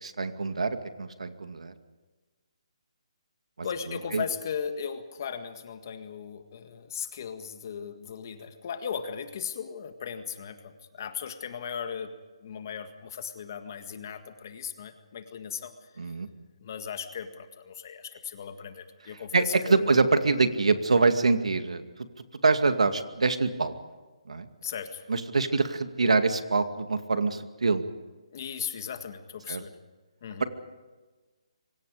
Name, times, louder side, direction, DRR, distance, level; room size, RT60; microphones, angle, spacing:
voice 1, 0.0-1.7 3.6-4.2 16.0-16.3 19.1-21.8 22.4-23.7 24.3-24.5 25.1-27.8 29.5-29.6 30.4-30.5, right 3 dB, 85° right, 8 dB, 2.3 m, -25 dB
voice 2, 3.6-12.1 12.4-15.9 16.6-19.9 24.6-25.0 28.3-29.7 30.2-30.4, left 7 dB, 30° left, 8 dB, 1.8 m, -37 dB
27.5 x 24.5 x 5.1 m, 1.3 s
hypercardioid pair, 175°, 3 cm